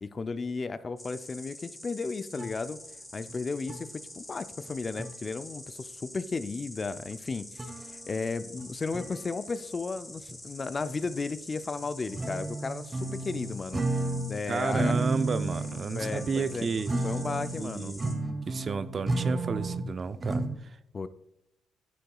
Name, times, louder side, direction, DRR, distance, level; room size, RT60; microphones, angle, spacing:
voice 1, 0.0-2.8 3.1-3.9 4.2-7.6 8.1-15.0 15.9-16.7 17.0-18.0 20.9-21.1, left 4 dB, 35° left, 12 dB, 0.4 m, -34 dB
Insect, 1.0-18.1, left 1 dB, 10° left, 1.4 m, -46 dB
sound 1, 2.4-2.6 3.3-3.4 3.6-3.8 4.7-4.8 5.0-5.2 7.3-8.1 8.5-9.3 10.3-10.4 11.0-11.1 11.9-14.4 14.7-20.6, right 2 dB, 25° right, 1.0 m, -32 dB
voice 2, 14.5-16.9 17.5-18.1 18.5-20.8, right 5 dB, 40° right, 13 dB, 0.4 m, -32 dB
9.8 x 6.7 x 2.3 m, 0.83 s
cardioid pair, 90°, 0 cm